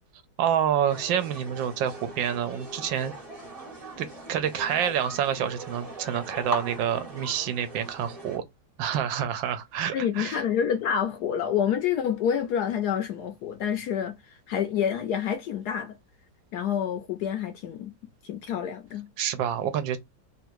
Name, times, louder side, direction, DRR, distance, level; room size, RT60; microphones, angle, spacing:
voice 1, 0.4-3.1 4.0-8.4 8.8-10.4 19.2-20.0, right 9 dB, 75° right, 1.4 m, -28 dB
sound 1, 0.9-8.4, right 2 dB, 25° right, 0.9 m, -40 dB
voice 2, 9.9-16.0 16.5-17.9 18.2-19.1, left 8 dB, 70° left, 0.9 m, -28 dB
3.4 x 2.5 x 4.5 m
omnidirectional pair, 2.2 m